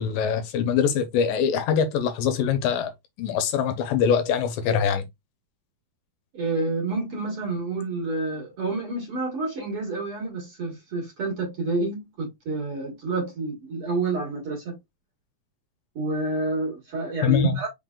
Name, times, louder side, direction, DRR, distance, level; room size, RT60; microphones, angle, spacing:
voice 1, 0.0-2.9 3.2-5.1 17.2-17.6, left 7 dB, 80° left, 2.4 m, -23 dB
voice 2, 6.3-14.7 15.9-17.7, right 3 dB, 45° right, 2.4 m, -28 dB
5.7 x 3.7 x 2.4 m
omnidirectional pair, 4.1 m